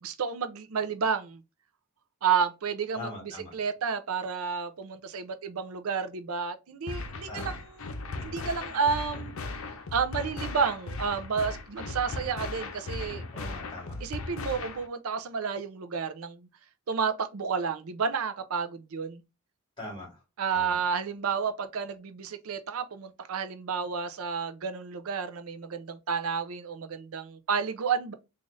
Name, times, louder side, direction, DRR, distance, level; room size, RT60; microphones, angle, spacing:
voice 1, 0.0-1.4 2.2-3.1 3.5-7.5 8.2-9.6 9.9-13.2 14.0-16.5 16.9-19.2 20.4-28.1, right 6 dB, 80° right, 0.5 m, -31 dB
voice 2, 2.9-3.5 7.3-7.6 13.3-14.1 19.8-20.2 20.5-20.8, left 2 dB, 25° left, 2.1 m, -41 dB
sound 1, 6.9-14.9, left 3 dB, 70° left, 0.6 m, -37 dB
3.9 x 2.5 x 3.2 m
head